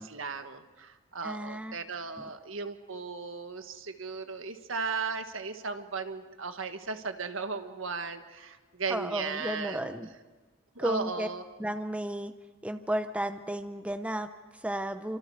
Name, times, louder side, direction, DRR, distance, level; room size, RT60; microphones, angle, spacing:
voice 1, 0.0-10.1 10.7-11.4, right 4 dB, 80° right, 7 dB, 1.7 m, -36 dB
voice 2, 1.2-1.8 2.2-2.3 8.9-10.1 10.8-11.3 11.6-12.3 12.6-15.2, right 1 dB, 5° right, 9 dB, 0.7 m, -33 dB
29.5 x 25.5 x 4.9 m, 1.3 s
head